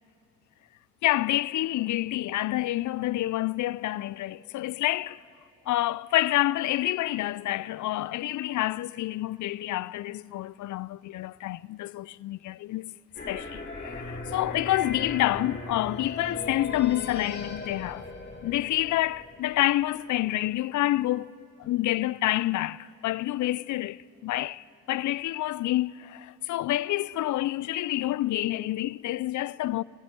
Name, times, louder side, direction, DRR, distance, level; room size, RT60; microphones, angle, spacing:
voice 1, 1.0-5.2 5.7-13.0 13.3-18.1 18.4-21.3 21.6-29.8, left 15 dB, 65° left, 0.5 m, -28 dB
sound 1, 13.2-20.0, left 2 dB, 35° left, 3.4 m, -38 dB
23.0 x 14.5 x 9.1 m
supercardioid pair, 50°, 31 cm